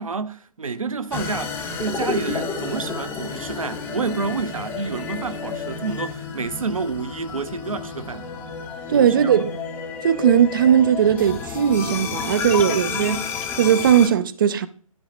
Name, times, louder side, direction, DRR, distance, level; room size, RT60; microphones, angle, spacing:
voice 1, 0.0-1.5 1.8-8.3 8.9-9.3, right 4 dB, 65° right, 0.9 m, -29 dB
sound 1, 1.1-14.1, left 5 dB, 10° left, 0.8 m, -31 dB
voice 2, 8.9-9.6 10.0-13.2 13.6-14.7, right 9 dB, 35° right, 0.5 m, -18 dB
12.5 x 4.9 x 4.1 m
figure-of-eight pair, 135°, 19 cm